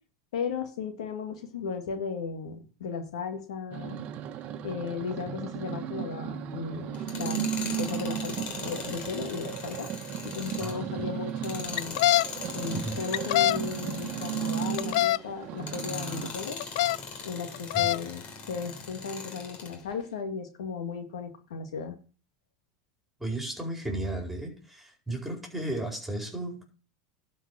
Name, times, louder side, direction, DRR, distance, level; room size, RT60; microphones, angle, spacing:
voice 1, 0.3-4.0 4.6-7.4 7.8-9.9 10.2-12.0 12.5-16.6 17.2-22.0, left 5 dB, 90° left, 5 dB, 1.9 m, -35 dB
sound 1, 3.7-16.3, right 9 dB, 45° right, 1.2 m, -35 dB
Tools, 6.9-15.1 15.6-19.8, left 5 dB, 45° left, 3.2 m, -40 dB
sound 2, 11.8-12.2 13.1-13.6 14.8-15.2 16.6-17.0 17.5-18.0, left 15 dB, 70° left, 0.4 m, -23 dB
voice 2, 23.2-26.6, right 1 dB, 5° right, 1 dB, 4.5 m, -34 dB
12.0 x 5.4 x 6.3 m, 0.38 s
supercardioid pair, 120°, 3 cm